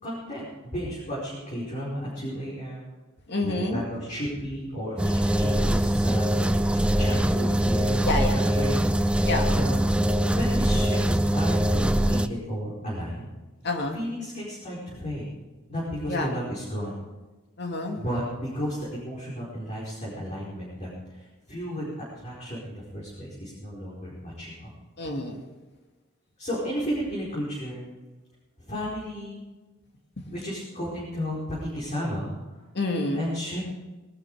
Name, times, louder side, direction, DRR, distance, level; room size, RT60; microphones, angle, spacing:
voice 1, 0.0-0.5 0.7-2.8 3.4-9.8 10.3-11.0 11.3-13.3 13.9-15.3 15.7-17.0 18.0-21.2 21.5-21.9 22.2-24.7 26.4-27.8 28.7-29.4 30.2-32.3 33.1-33.6, equal, 35° left, -7 dB, 5.0 m, -33 dB
voice 2, 3.3-3.8 8.0-8.4 9.2-9.5 13.6-14.0 16.1-16.3 17.6-18.0 25.0-25.4 32.7-33.3, left 2 dB, 55° left, 3 dB, 2.4 m, -28 dB
sound 1, 5.0-12.3, right 1 dB, 5° right, 0.6 m, -23 dB
20.0 x 12.5 x 5.0 m, 1.2 s
head